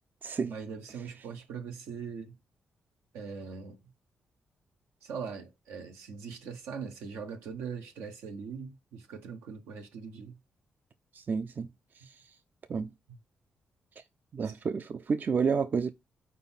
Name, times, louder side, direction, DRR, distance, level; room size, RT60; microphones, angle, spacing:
voice 1, 0.4-2.4 3.1-3.8 5.0-10.4 13.1-13.2 14.4-14.5, right 6 dB, 85° right, 1.1 m, -41 dB
voice 2, 11.1-11.7 12.7-12.9 14.3-15.9, right 5 dB, 50° right, 0.5 m, -30 dB
4.4 x 4.0 x 5.6 m
supercardioid pair, 55°, 4 cm